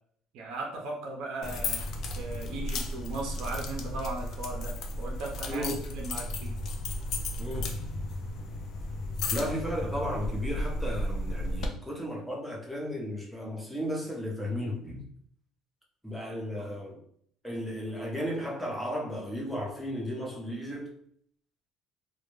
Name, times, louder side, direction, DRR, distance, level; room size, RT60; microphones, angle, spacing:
voice 1, 0.3-1.9 2.2-5.6 5.9-6.5 16.6-16.7, right 2 dB, 75° right, 0.6 m, -37 dB
sound 1, 1.4-11.7, left 1 dB, 65° left, 0.4 m, -34 dB
voice 2, 5.5-5.8 7.4-7.8 9.3-15.1 16.0-17.0 17.4-21.0, equal, ahead, 0.7 m, -34 dB
2.2 x 2.1 x 3.1 m
supercardioid pair, 95°, 0 cm